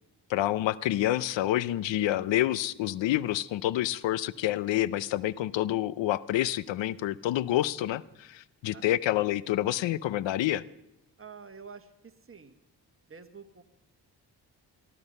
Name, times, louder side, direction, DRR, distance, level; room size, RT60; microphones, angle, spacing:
voice 1, 0.3-10.6, left 14 dB, 90° left, 20 dB, 0.6 m, -28 dB
voice 2, 11.2-12.6 13.1-13.6, right 5 dB, 30° right, 7 dB, 1.6 m, -48 dB
19.0 x 13.0 x 5.4 m, 0.89 s
cardioid pair, 65°, 43 cm